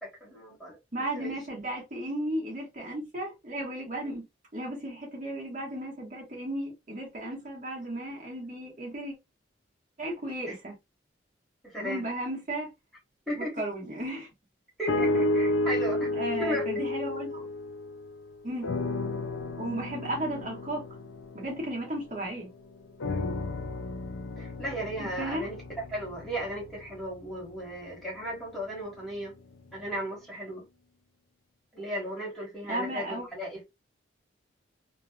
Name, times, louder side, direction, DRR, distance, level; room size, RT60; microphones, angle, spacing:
voice 1, 0.0-0.8 1.1-1.3 10.5-10.6 11.7-12.1 13.3-13.6 14.8-16.1 16.4-16.9 23.0-23.3 24.4-25.6 25.9-29.3 29.7-30.6 31.7-33.6, equal, ahead, 1.4 m, -35 dB
voice 2, 0.9-4.2 4.5-9.1 10.0-10.7 11.8-12.7 13.4-14.3 16.1-17.4 18.4-18.7 19.6-20.9 21.3-22.5 25.0-25.5 32.7-33.3, right 1 dB, 40° right, 1.1 m, -34 dB
sound 1, 14.9-18.2 18.6-22.4 23.0-27.2 27.9-28.0, left 2 dB, 90° left, 0.5 m, -32 dB
2.9 x 2.5 x 2.3 m
head